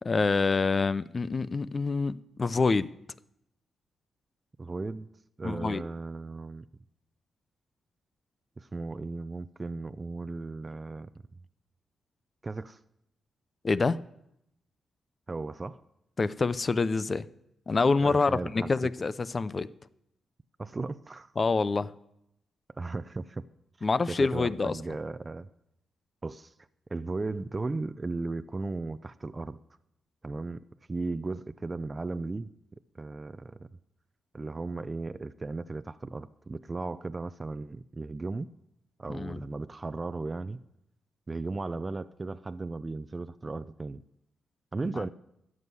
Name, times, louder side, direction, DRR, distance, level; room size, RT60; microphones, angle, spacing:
voice 1, 0.0-2.9 5.4-5.8 13.6-14.0 16.2-17.3 17.7-19.7 21.4-21.9 23.8-24.7 39.1-39.4, left 4 dB, 40° left, 16 dB, 0.6 m, -26 dB
voice 2, 4.6-5.1 5.4-6.7 8.6-11.4 12.4-12.8 15.3-15.8 18.0-18.7 20.6-21.3 22.8-23.4 23.8-25.5 26.2-26.5 26.9-29.6 30.2-30.6 30.9-32.5 32.9-33.6 34.3-38.5 39.0-40.6 41.3-44.0 44.7-45.1, right 3 dB, 30° right, 12 dB, 0.5 m, -36 dB
13.5 x 6.4 x 9.4 m, 0.79 s
cardioid pair, 65°, 0 cm